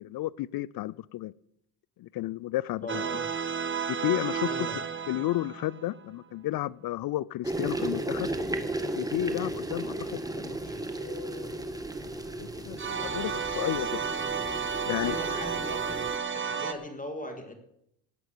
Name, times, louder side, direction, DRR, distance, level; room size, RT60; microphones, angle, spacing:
voice 1, 0.0-1.3 2.0-3.0 4.0-4.5 5.1-8.3 9.0-10.6 10.9-11.7 12.4-14.0 14.8-15.2, left 15 dB, 50° left, 23 dB, 0.5 m, -32 dB
voice 2, 2.8-3.2 4.4-4.8 15.0-16.1 16.3-17.5, left 1 dB, 15° left, 5 dB, 2.4 m, -39 dB
sound 1, 2.9-6.0 12.8-16.7, right 6 dB, 25° right, 1.3 m, -32 dB
sound 2, 7.4-16.2, right 1 dB, 5° right, 1.5 m, -35 dB
18.0 x 8.1 x 6.2 m, 0.77 s
supercardioid pair, 80°, 48 cm